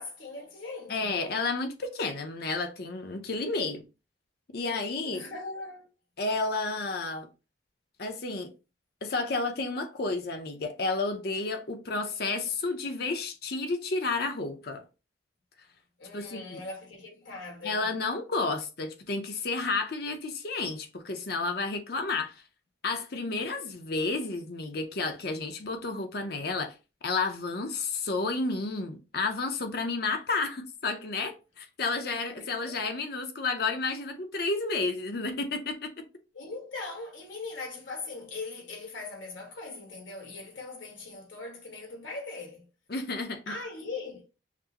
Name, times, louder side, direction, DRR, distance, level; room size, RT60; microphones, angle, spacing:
voice 1, 0.0-1.3 5.0-5.9 16.0-17.9 32.3-32.7 36.3-42.7 43.5-44.2, left 3 dB, 85° left, 1.4 m, -40 dB
voice 2, 0.9-3.8 4.5-5.2 6.2-7.3 8.0-8.5 9.0-14.8 16.1-16.6 17.6-22.4 22.8-26.7 27.0-36.0 42.9-43.6, left 3 dB, 55° left, 0.6 m, -31 dB
5.8 x 2.0 x 2.8 m
head